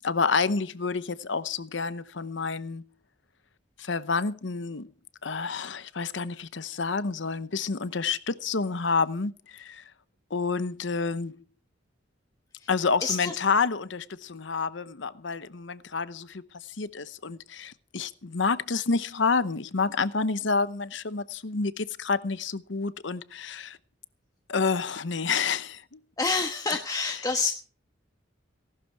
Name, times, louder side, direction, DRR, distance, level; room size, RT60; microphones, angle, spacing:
voice 1, 0.0-2.9 3.8-4.9 5.2-9.8 10.3-11.4 12.7-23.8 24.5-26.0, left 4 dB, 70° left, 0.9 m, -29 dB
voice 2, 13.0-13.4 26.2-27.5, left 4 dB, 20° left, 1.2 m, -27 dB
18.0 x 12.0 x 4.7 m
head